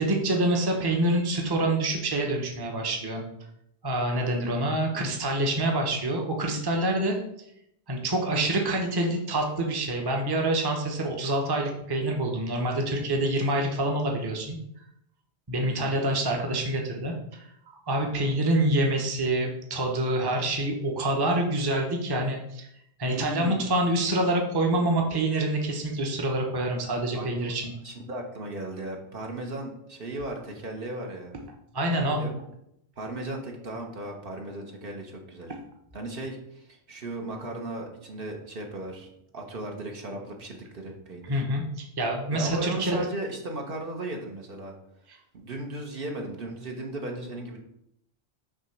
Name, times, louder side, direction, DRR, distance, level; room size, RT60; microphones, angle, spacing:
voice 1, 0.0-3.2 3.8-7.2 7.9-14.6 15.5-22.7 23.0-27.6 31.7-32.2 41.3-43.0, right 1 dB, 25° right, 1 dB, 0.8 m, -26 dB
voice 2, 23.1-23.7 27.1-27.5 27.8-31.4 32.2-32.4 33.0-35.5 35.9-39.1 39.3-41.4 42.3-44.7 45.3-47.6, right 2 dB, 55° right, 1 dB, 1.2 m, -36 dB
6.4 x 3.0 x 5.8 m, 0.77 s
omnidirectional pair, 1.1 m